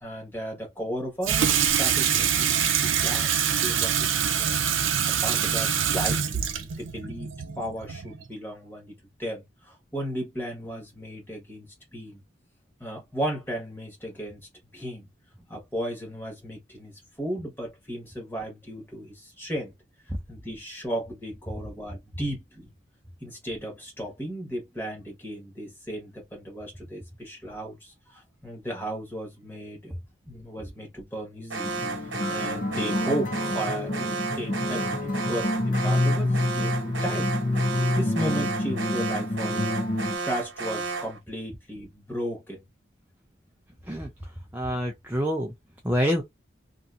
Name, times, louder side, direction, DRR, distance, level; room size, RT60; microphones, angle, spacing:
voice 1, 0.0-7.3 7.6-8.9 9.2-12.2 12.8-15.1 15.5-19.7 20.3-22.7 23.2-30.0 30.2-31.7 32.0-37.3 37.9-42.6, right 1 dB, 10° left, 1.2 m, -35 dB
Water tap faucet / Sink (filling or washing), 1.2-8.3, right 8 dB, 90° right, 0.5 m, -25 dB
Alarm, 31.5-41.2, right 4 dB, 70° right, 0.9 m, -32 dB
sound 1, 31.6-40.2, left 2 dB, 45° left, 0.5 m, -28 dB
voice 2, 44.5-45.5 45.8-46.2, equal, 10° right, 0.5 m, -26 dB
2.7 x 2.6 x 2.4 m
head